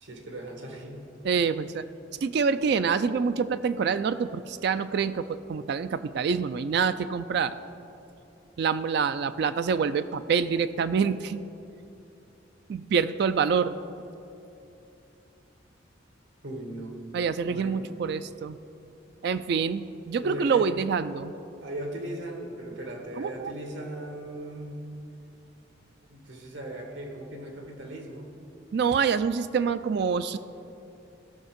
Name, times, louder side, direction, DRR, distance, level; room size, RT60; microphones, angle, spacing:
voice 1, 0.0-1.0 16.4-16.9 17.5-17.8 20.2-20.7 21.6-24.8 26.1-28.3, right 1 dB, 80° right, 2 dB, 1.8 m, -38 dB
voice 2, 1.2-1.8 2.2-7.6 8.6-11.4 12.7-13.7 17.1-18.6 19.2-21.3 23.2-23.5 28.7-30.4, right 6 dB, 60° right, 12 dB, 0.3 m, -26 dB
16.0 x 6.4 x 5.1 m, 2.8 s
head